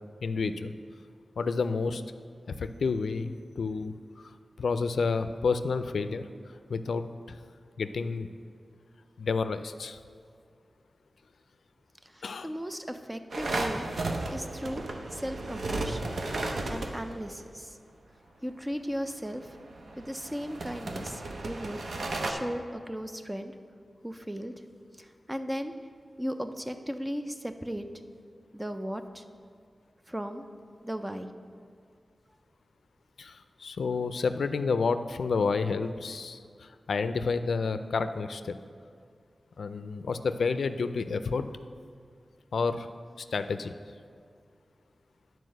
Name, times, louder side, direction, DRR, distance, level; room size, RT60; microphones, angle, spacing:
voice 1, 0.2-0.7 1.4-2.0 2.6-6.3 6.7-7.4 7.8-8.3 9.2-10.0 12.2-12.5 33.2-38.5 39.6-41.5 42.5-42.9 43.2-43.7, left 4 dB, 90° left, 10 dB, 0.3 m, -30 dB
voice 2, 12.1-13.9 14.3-14.8 15.1-16.2 16.7-17.8 18.4-19.6 20.0-21.8 22.2-23.5 24.0-24.5 25.0-25.7 26.2-27.8 28.5-29.2 30.1-30.4 30.8-31.3, equal, 10° right, 8 dB, 0.4 m, -36 dB
sound 1, 13.3-17.3 19.2-22.3, right 2 dB, 70° right, 0.7 m, -34 dB
9.7 x 4.6 x 6.3 m, 2.2 s
wide cardioid pair, 110°, 0 cm